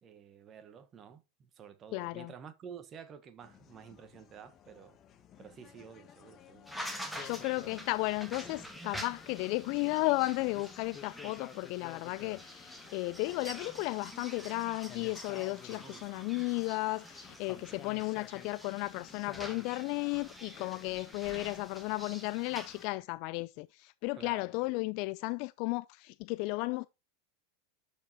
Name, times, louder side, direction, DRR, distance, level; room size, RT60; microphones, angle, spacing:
voice 1, 0.0-5.0 5.4-6.7 15.8-16.1 17.7-17.9 24.1-24.5, right 7 dB, 35° right, 1.1 m, -51 dB
voice 2, 1.9-2.3 7.2-26.9, left 23 dB, 55° left, 0.4 m, -34 dB
sound 1, 3.4-22.8, left 9 dB, 35° left, 1.2 m, -54 dB
sound 2, 6.6-22.9, equal, 5° right, 1.9 m, -47 dB
12.0 x 4.9 x 2.7 m
hypercardioid pair, 90°, 0 cm